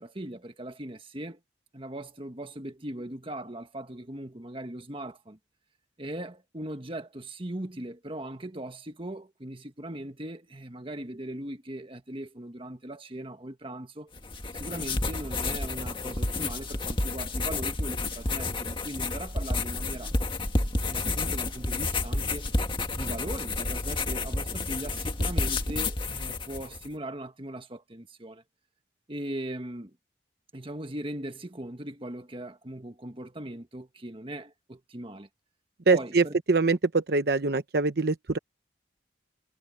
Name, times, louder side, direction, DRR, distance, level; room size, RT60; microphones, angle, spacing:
voice 1, 0.0-1.4 1.7-5.4 6.0-14.1 14.5-20.1 20.8-22.5 22.9-28.4 29.1-29.9 30.5-35.3 35.9-36.3, right 1 dB, 30° right, 1.5 m, -39 dB
sound 1, 14.2-26.9, left 2 dB, 25° left, 1.9 m, -30 dB
voice 2, 35.9-38.4, right 3 dB, 60° right, 0.9 m, -24 dB
head